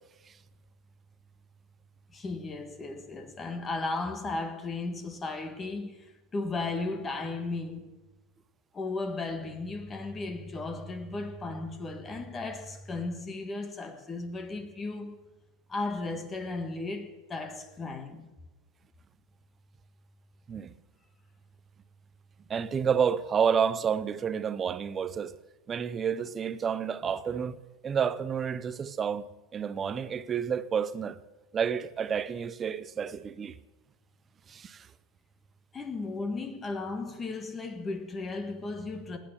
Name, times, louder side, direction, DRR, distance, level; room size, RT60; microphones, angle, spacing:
voice 1, 2.1-7.9 8.7-15.2 15.7-18.3 35.7-39.2, left 3 dB, 15° left, 1.5 m, -35 dB
voice 2, 22.5-25.3 25.7-27.6 27.8-29.3 29.5-31.2 31.5-33.5 34.5-34.9, right 7 dB, 20° right, 0.6 m, -29 dB
16.5 x 9.1 x 7.2 m
supercardioid pair, 150°, 0 cm